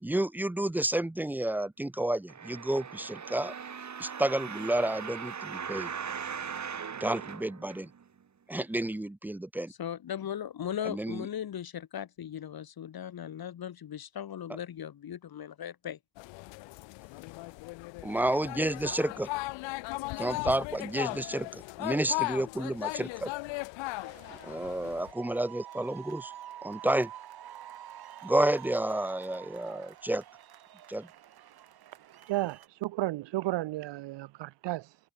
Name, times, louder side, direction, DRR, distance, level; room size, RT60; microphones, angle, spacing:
voice 1, 0.0-3.5 4.0-5.9 7.0-7.9 8.5-9.7 10.9-11.3 18.0-19.3 20.2-23.3 24.3-26.3 26.6-27.1 28.2-30.2 30.9-31.1, right 1 dB, 5° right, 0.5 m, -30 dB
sound 1, 2.3-8.2 8.8-8.9, right 7 dB, 40° right, 2.5 m, -39 dB
voice 2, 9.8-16.0, left 9 dB, 55° left, 2.5 m, -38 dB
sound 2, 16.2-25.1, left 23 dB, 90° left, 1.8 m, -37 dB
sound 3, 23.9-32.7, right 11 dB, 60° right, 1.6 m, -48 dB
voice 3, 32.3-35.0, right 17 dB, 75° right, 1.3 m, -33 dB
supercardioid pair, 70°, 43 cm